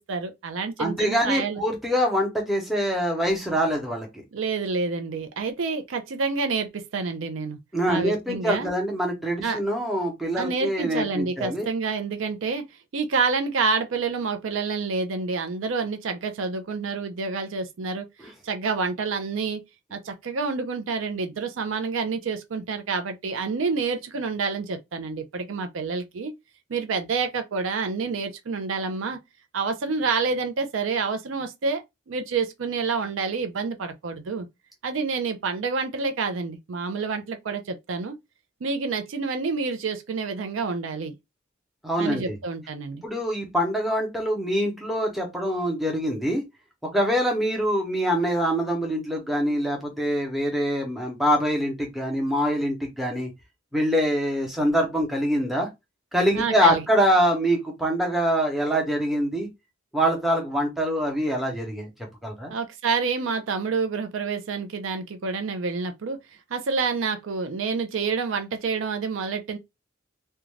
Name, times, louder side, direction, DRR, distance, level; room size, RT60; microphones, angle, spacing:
voice 1, 0.1-1.6 4.3-7.6 7.9-8.7 9.4-9.6 10.3-12.7 12.9-18.1 18.4-19.6 19.9-26.3 26.7-29.2 29.5-34.5 34.8-38.1 38.6-41.1 42.0-43.0 56.3-56.8 62.5-66.2 66.5-69.6, right 4 dB, 85° right, 0.5 m, -28 dB
voice 2, 0.8-4.2 7.7-11.7 18.2-18.3 41.8-42.4 43.0-46.4 46.8-53.3 53.7-55.7 56.1-59.5 59.9-61.9 62.2-62.5, equal, ahead, 0.7 m, -24 dB
2.4 x 2.2 x 3.1 m
head